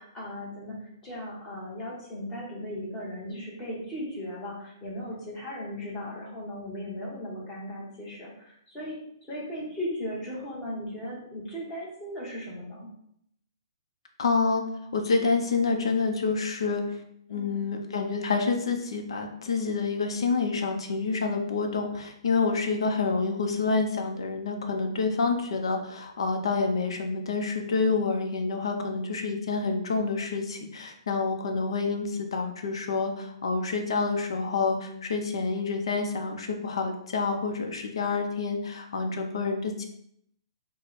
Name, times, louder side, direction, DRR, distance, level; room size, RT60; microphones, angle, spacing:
voice 1, 0.0-12.9 17.3-17.6, left 1 dB, 15° left, -5 dB, 1.3 m, -37 dB
voice 2, 14.2-14.6 14.9-17.0 17.3-39.8, left 4 dB, 75° left, 4 dB, 0.8 m, -28 dB
4.6 x 2.3 x 4.2 m, 0.71 s
hypercardioid pair, 165°, 3 cm